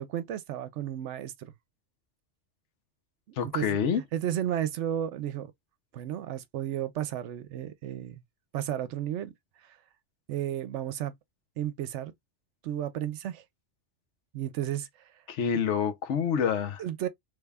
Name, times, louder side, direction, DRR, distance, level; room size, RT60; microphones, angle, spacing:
voice 1, 0.0-1.5 3.5-3.8 4.1-5.5 5.9-8.2 8.5-9.3 9.7-9.8 10.3-11.1 11.6-12.1 12.6-13.4 14.3-14.9 15.5-15.6 16.8-17.1, right 11 dB, 75° right, 0.9 m, -33 dB
voice 2, 3.4-4.0 15.3-16.8, left 7 dB, 75° left, 1.0 m, -27 dB
3.3 x 2.3 x 3.4 m
omnidirectional pair, 1.2 m